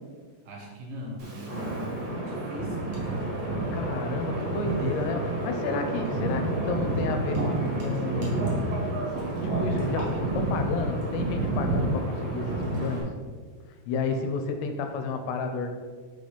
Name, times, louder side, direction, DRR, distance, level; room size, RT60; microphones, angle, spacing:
voice 1, 0.5-3.6, equal, 70° right, -1 dB, 2.4 m, -40 dB
Wind, 1.2-13.0, right 2 dB, 50° right, 2.1 m, -29 dB
voice 2, 3.7-8.7 9.4-13.1 13.9-15.7, left 4 dB, 85° left, 5 dB, 2.6 m, -31 dB
5.7 x 3.9 x 5.0 m, 1.5 s
omnidirectional pair, 4.7 m